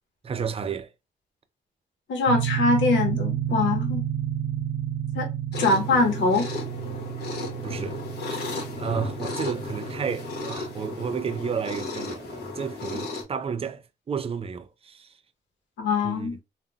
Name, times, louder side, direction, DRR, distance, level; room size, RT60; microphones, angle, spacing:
voice 1, 0.2-0.9 7.6-8.0 8.3-8.4 8.8-15.1 16.0-16.4, right 6 dB, 30° right, 0.4 m, -32 dB
voice 2, 2.1-4.0 5.1-5.3 5.6-6.5 15.8-16.4, left 3 dB, 90° left, 0.9 m, -23 dB
sound 1, 2.3-11.8, right 11 dB, 75° right, 0.6 m, -31 dB
sound 2, 5.5-13.2, left 3 dB, 60° left, 1.1 m, -34 dB
3.6 x 2.2 x 2.3 m
cardioid pair, 65°, 19 cm